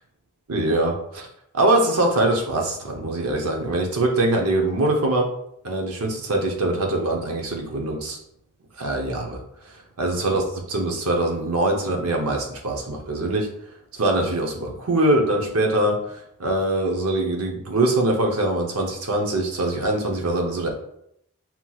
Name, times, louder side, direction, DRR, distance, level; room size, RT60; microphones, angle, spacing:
voice 1, 0.5-1.3 1.5-5.3 5.6-8.2 8.8-9.4 10.0-10.4 10.7-13.5 14.0-15.9 16.4-20.7, right 2 dB, 75° right, 2 dB, 0.8 m, -23 dB
5.8 x 2.9 x 2.4 m, 0.75 s
head